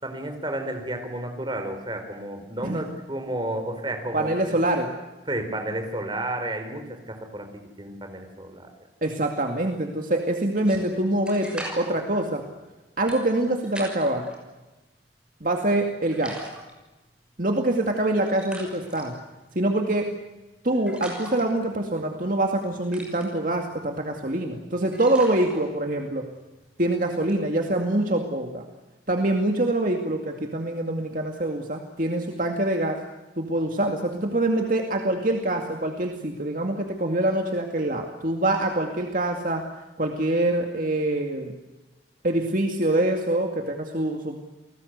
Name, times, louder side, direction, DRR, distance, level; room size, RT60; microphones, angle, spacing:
voice 1, 0.0-4.6 5.3-7.5 7.8-8.7, right 1 dB, 25° right, 5 dB, 4.5 m, -32 dB
voice 2, 4.1-4.9 9.0-12.4 13.0-14.3 15.4-16.4 17.4-19.1 19.6-20.1 20.6-26.3 26.8-28.7 29.1-33.0 33.4-39.7 40.0-41.5 42.2-44.4, right 1 dB, 45° right, 3 dB, 2.3 m, -25 dB
sound 1, 10.6-14.4 14.8-15.8 16.1-27.9, right 1 dB, 5° right, 6.2 m, -43 dB
29.5 x 19.5 x 8.2 m, 1.1 s
head